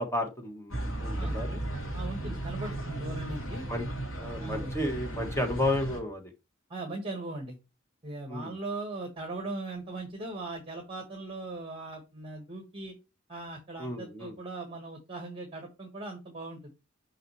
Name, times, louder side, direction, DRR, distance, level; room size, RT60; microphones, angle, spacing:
voice 1, 0.0-1.6 2.2-2.3 3.7-3.9 4.2-6.3 8.3-8.5 13.8-14.3, left 1 dB, 15° left, 3 dB, 1.5 m, -32 dB
sound 1, 0.7-6.0, right 1 dB, 85° left, 2.9 m, -35 dB
voice 2, 1.9-3.6 4.4-4.7 6.7-7.6 8.0-12.9 13.3-16.7, right 2 dB, 25° right, 3 dB, 1.5 m, -39 dB
5.9 x 5.8 x 3.2 m, 0.26 s
head